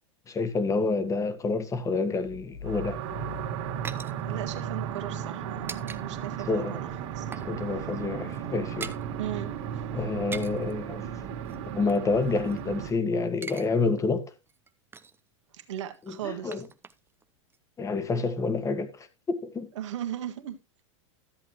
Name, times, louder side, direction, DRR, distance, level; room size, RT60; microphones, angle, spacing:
voice 1, 0.3-3.0 6.5-6.8 7.5-8.9 9.9-11.1 11.7-14.3 16.1-16.6 17.8-19.7, left 3 dB, 20° left, 1.5 m, -28 dB
sound 1, 2.2-5.0, left 6 dB, 80° left, 1.8 m, -43 dB
sound 2, 2.6-12.9, right 9 dB, 55° right, 2.4 m, -35 dB
sound 3, 3.0-6.0 6.3-6.5 6.8-7.6 7.8-8.0 8.2-9.1 10.1-10.7 11.5-12.9 13.2-13.7 14.0-14.1 14.5-15.3 15.9-17.2 17.5-17.6, right 5 dB, 15° right, 0.7 m, -43 dB
voice 2, 4.2-7.3 9.2-9.9 15.5-16.6 19.7-20.6, right 11 dB, 70° right, 1.7 m, -37 dB
13.0 x 7.9 x 3.0 m
hypercardioid pair, 105°, 16 cm